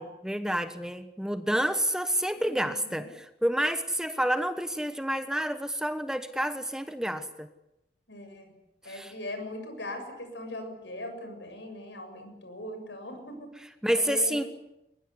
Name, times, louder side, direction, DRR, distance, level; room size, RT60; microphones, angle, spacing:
voice 1, 0.0-7.5 8.9-9.1 13.6-14.4, right 1 dB, 5° right, 10 dB, 1.2 m, -29 dB
voice 2, 2.3-3.1 8.1-8.5 8.8-13.5 13.9-14.5, left 1 dB, 90° left, 6 dB, 7.3 m, -40 dB
22.5 x 20.5 x 9.8 m, 0.87 s
head